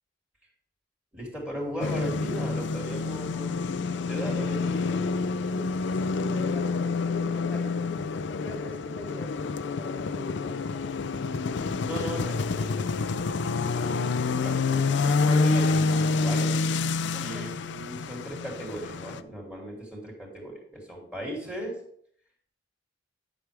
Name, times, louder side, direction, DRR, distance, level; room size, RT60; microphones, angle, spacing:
voice 1, 1.1-3.7 4.1-5.1 11.8-16.6 17.1-21.8, equal, 5° right, -2 dB, 2.9 m, -37 dB
sound 1, 1.8-19.2, left 4 dB, 65° left, 0.4 m, -28 dB
voice 2, 5.5-8.0 8.4-10.9 17.1-17.5, equal, 10° left, 1 dB, 1.8 m, -43 dB
11.0 x 6.2 x 3.4 m, 0.64 s
head